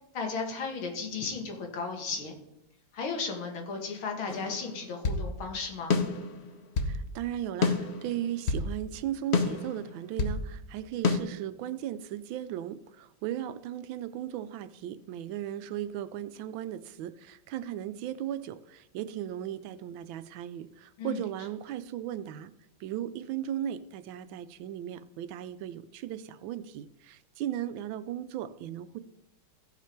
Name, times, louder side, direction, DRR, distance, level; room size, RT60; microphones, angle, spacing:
voice 1, 0.1-2.3 2.9-6.0 21.0-21.2, left 4 dB, 85° left, 2 dB, 2.5 m, -35 dB
sound 1, 4.3-5.3 5.9-7.0 7.6-8.7 9.3-10.4 11.0-11.2, left 4 dB, 50° left, 0.8 m, -28 dB
voice 2, 6.8-22.5 22.8-29.0, right 11 dB, 80° right, 14 dB, 1.3 m, -36 dB
15.5 x 5.9 x 4.5 m, 0.85 s
omnidirectional pair, 2.2 m